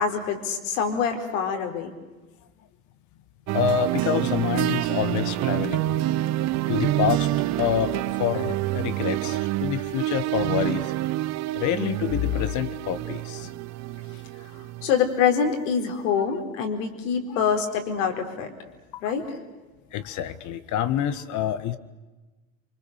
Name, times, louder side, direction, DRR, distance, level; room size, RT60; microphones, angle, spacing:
voice 1, 0.0-1.9 14.8-18.5 19.0-19.3, left 7 dB, 65° left, 4 dB, 4.5 m, -25 dB
voice 2, 3.5-6.0 6.7-7.3 7.6-10.9 11.5-13.5 16.2-16.3 17.3-17.5 19.9-21.8, left 9 dB, 45° left, 12 dB, 1.8 m, -27 dB
sound 1, 3.5-15.0, right 16 dB, 40° right, 0.8 m, -27 dB
28.5 x 25.5 x 6.6 m, 1.2 s
hypercardioid pair, 90°, 40 cm